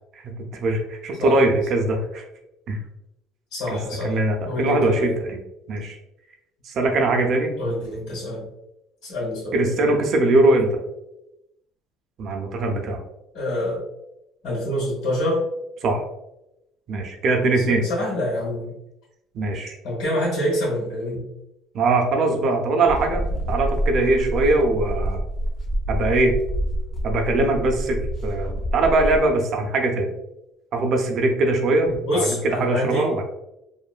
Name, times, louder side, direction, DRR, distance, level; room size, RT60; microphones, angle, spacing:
voice 1, 0.2-2.2 2.7-2.8 3.7-3.8 4.0-5.3 5.7-6.0 6.6-7.5 9.5-10.7 12.2-13.0 15.8-16.0 16.9-17.8 19.3-19.8 21.7-25.2 25.9-26.3 27.0-30.1 30.7-33.3, right 2 dB, 40° right, 3 dB, 0.5 m, -21 dB
voice 2, 3.5-4.2 4.4-5.1 7.6-8.5 9.0-9.6 13.3-13.8 14.4-15.5 17.6-18.7 19.8-21.3 31.9-33.1, left 1 dB, 85° left, -7 dB, 1.3 m, -26 dB
sound 1, 22.9-29.3, equal, 30° left, 0.5 m, -27 dB
3.0 x 2.1 x 2.4 m, 0.87 s
cardioid pair, 160°, 0 cm